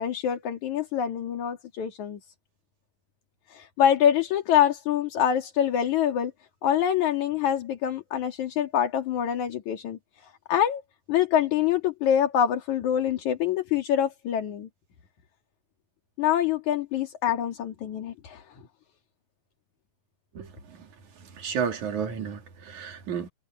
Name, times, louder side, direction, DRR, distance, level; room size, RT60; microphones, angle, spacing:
voice 1, 0.0-2.2 3.5-6.3 6.6-10.8 11.1-14.7 16.2-18.4, left 9 dB, 70° left, 3.5 m, -25 dB
voice 2, 21.4-23.3, right 7 dB, 70° right, 4.1 m, -31 dB
omnidirectional pair, 3.6 m